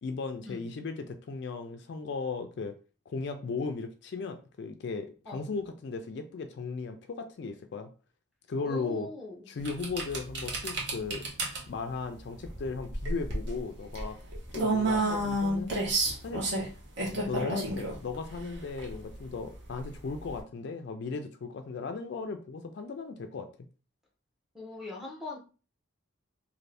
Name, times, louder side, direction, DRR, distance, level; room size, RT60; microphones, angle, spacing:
voice 1, 0.0-2.7 3.1-7.9 8.5-9.1 9.5-11.3 11.7-14.2 14.5-15.7 16.2-16.4 17.0-23.5, left 4 dB, 55° left, 7 dB, 0.3 m, -36 dB
voice 2, 8.6-9.5 14.9-15.2 24.5-25.4, left 2 dB, ahead, -3 dB, 0.7 m, -41 dB
sound 1, 9.6-20.4, right 2 dB, 60° right, 0.8 m, -32 dB
2.6 x 2.6 x 3.3 m, 0.36 s
head